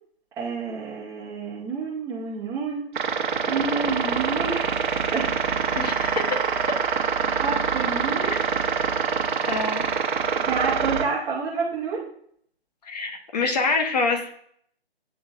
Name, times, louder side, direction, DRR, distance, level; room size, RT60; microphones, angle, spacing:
voice 1, 0.4-2.9 3.5-4.7 5.1-5.3 7.2-8.4 10.4-12.0, right 4 dB, 10° right, -8 dB, 0.8 m, -29 dB
sound 1, 3.0-11.0, right 6 dB, 50° right, 1.1 m, -25 dB
voice 2, 5.7-6.4 8.2-8.4 9.5-9.9 12.8-14.3, left 4 dB, 40° left, 4 dB, 1.3 m, -26 dB
10.5 x 3.6 x 2.6 m, 0.65 s
figure-of-eight pair, 145°, 31 cm